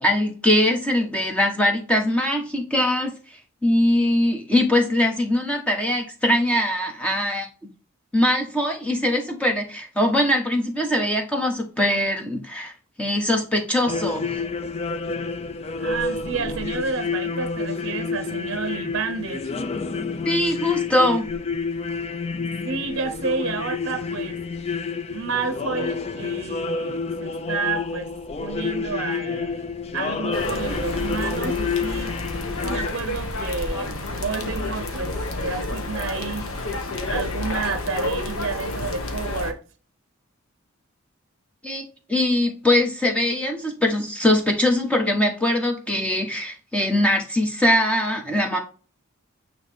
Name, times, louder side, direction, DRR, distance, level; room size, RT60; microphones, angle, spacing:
voice 1, 0.0-7.5 8.1-12.7 13.0-14.4 20.2-21.3 41.6-41.8 42.1-48.6, left 1 dB, 5° left, 1.1 m, -22 dB
sound 1, 13.9-32.9, left 4 dB, 30° left, 0.4 m, -29 dB
voice 2, 15.8-19.5 22.6-24.4 25.1-28.1 28.4-29.5 29.9-32.1 32.6-36.5 37.1-39.6, right 4 dB, 55° right, 0.7 m, -30 dB
sound 2, 30.3-39.5, left 2 dB, 80° left, 1.1 m, -30 dB
9.0 x 3.1 x 3.5 m
head